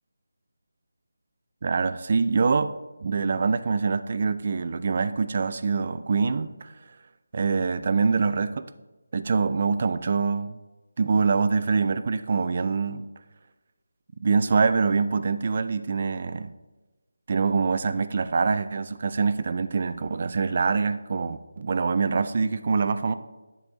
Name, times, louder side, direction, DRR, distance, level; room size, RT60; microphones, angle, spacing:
voice 1, 1.6-2.7 3.0-6.7 7.3-8.7 9.1-10.6 11.0-13.1 14.2-16.5 17.3-23.2, right 4 dB, 35° right, 12 dB, 0.3 m, -24 dB
10.0 x 4.1 x 3.5 m, 1.1 s
figure-of-eight pair, 170°, 0 cm